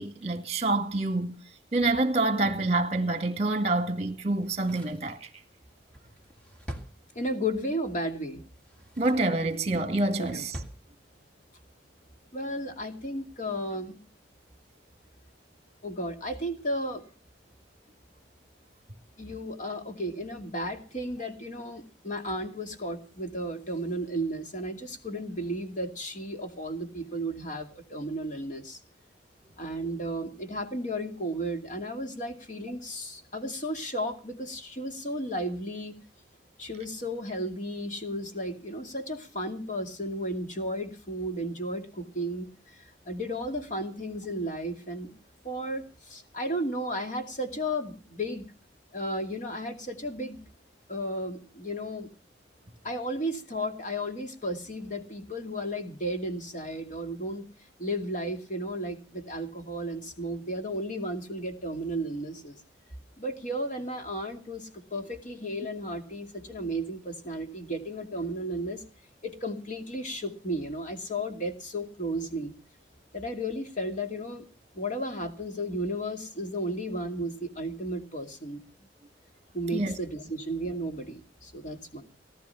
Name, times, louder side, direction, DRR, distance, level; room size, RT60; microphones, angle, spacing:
voice 1, 0.0-1.4 1.7-5.3 9.0-10.6 79.7-79.9, right 2 dB, 35° right, 2.2 m, -27 dB
Drawer open or close, 4.3-7.6 8.5-9.4 9.8-10.8 11.1-11.2, right 1 dB, 5° left, 2.1 m, -45 dB
voice 2, 7.1-8.4 10.2-10.4 12.3-14.0 15.8-17.0 19.2-28.8 29.6-35.9 36.6-45.1 45.4-48.5 48.9-50.4 50.9-52.1 52.8-57.4 57.8-62.6 63.2-68.8 69.2-72.5 73.1-74.5 74.7-78.6 79.5-82.0, equal, 45° left, 2.5 m, -34 dB
18.5 x 12.0 x 5.7 m
head